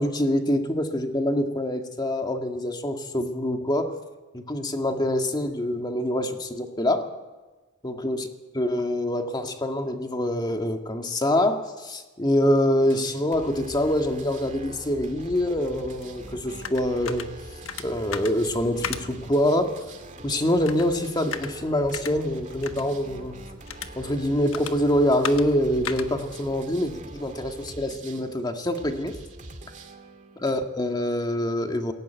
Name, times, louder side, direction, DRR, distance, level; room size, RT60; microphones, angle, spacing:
voice 1, 0.0-4.0 4.3-7.1 7.8-8.3 8.5-17.3 17.8-19.7 20.2-23.4 24.0-29.1 30.4-31.9, left 1 dB, 20° left, 5 dB, 1.8 m, -25 dB
sound 1, 12.8-30.5, right 1 dB, 40° right, 2.1 m, -43 dB
sound 2, 16.0-27.7, left 7 dB, 80° left, 1.2 m, -40 dB
21.5 x 17.5 x 9.2 m, 1.2 s
head